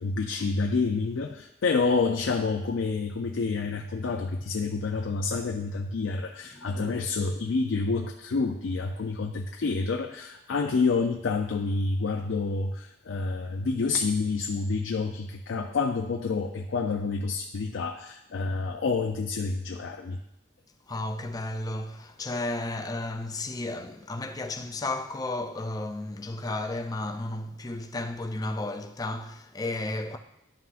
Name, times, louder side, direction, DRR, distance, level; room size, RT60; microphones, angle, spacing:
voice 1, 0.0-20.2, left 4 dB, 80° left, 0.5 m, -28 dB
voice 2, 6.5-7.1 20.9-30.2, left 2 dB, 20° left, 0.4 m, -33 dB
11.0 x 5.7 x 2.5 m
head